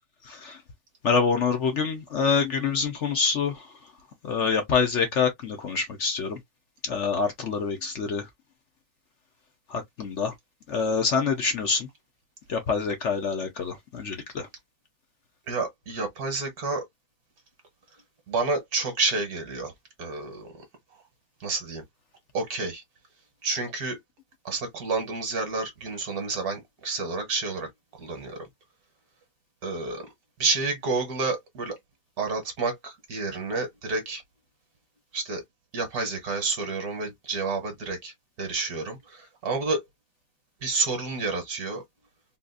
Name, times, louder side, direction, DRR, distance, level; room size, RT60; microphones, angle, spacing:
voice 1, 0.3-0.6 1.0-3.7 4.2-6.4 6.8-8.3 9.7-10.3 10.7-11.9 12.5-14.5, left 5 dB, 60° left, 0.7 m, -26 dB
voice 2, 15.5-16.8 18.3-19.7 20.0-20.5 21.4-21.8 22.3-22.8 23.4-24.0 24.4-27.7 28.0-28.5 29.6-30.0 30.4-31.8 32.2-34.2 35.1-35.4 35.7-38.1 38.4-39.8 40.6-41.8, right 3 dB, 55° right, 1.3 m, -29 dB
3.9 x 2.4 x 2.4 m
omnidirectional pair, 2.1 m